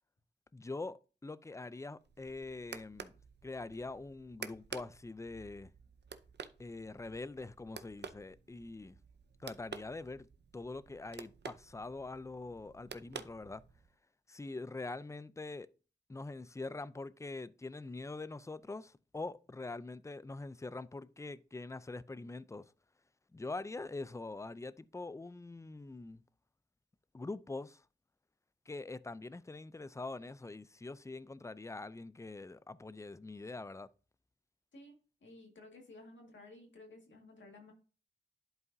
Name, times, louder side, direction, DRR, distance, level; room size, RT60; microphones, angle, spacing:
voice 1, 0.5-3.1 3.4-5.7 6.6-9.0 9.4-10.3 10.5-13.6 14.3-15.7 16.1-22.7 23.3-26.2 27.1-27.8 28.7-33.9, left 3 dB, 15° left, 0.4 m, -44 dB
sound 1, 2.0-13.9, right 6 dB, 70° right, 0.6 m, -51 dB
voice 2, 34.7-37.7, left 2 dB, 90° left, 1.9 m, -55 dB
11.0 x 4.7 x 2.7 m
cardioid pair, 50°, 19 cm